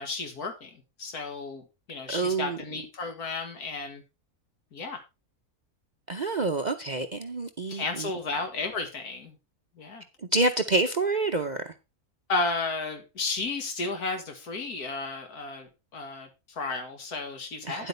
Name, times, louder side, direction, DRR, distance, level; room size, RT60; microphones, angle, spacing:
voice 1, 0.0-4.0 4.7-5.0 7.7-9.4 9.8-10.0 12.3-17.9, left 3 dB, 85° left, 2.1 m, -33 dB
voice 2, 2.1-2.6 6.1-8.1 10.3-11.7 17.7-17.9, right 2 dB, 45° right, 0.6 m, -27 dB
10.5 x 8.1 x 3.3 m
omnidirectional pair, 1.6 m